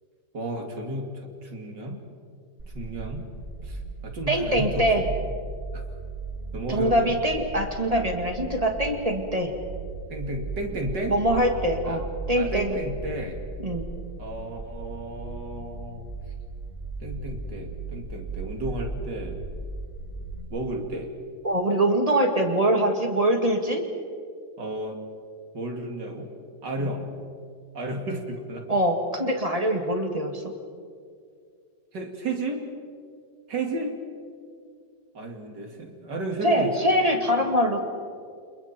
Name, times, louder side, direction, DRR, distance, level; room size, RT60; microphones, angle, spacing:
voice 1, 0.3-2.0 2.7-3.2 3.6-5.1 5.7-5.8 6.5-7.2 10.1-11.2 11.8-12.0 12.3-13.4 14.2-16.0 17.0-19.4 20.5-21.1 24.6-25.0 25.5-26.3 26.6-27.1 27.7-28.8 31.9-32.6 33.5-34.0 35.1-36.9 37.4-37.5, right 1 dB, 75° right, 2 dB, 3.3 m, -33 dB
sound 1, 2.6-20.4, right 3 dB, 40° right, 4.2 m, -36 dB
voice 2, 4.3-5.0 6.7-9.5 11.1-12.8 13.6-13.9 21.4-23.8 26.8-26.9 28.7-30.4 36.4-37.9, right 1 dB, 20° right, 3 dB, 2.3 m, -23 dB
30.0 x 27.5 x 4.5 m, 2.2 s
omnidirectional pair, 1.9 m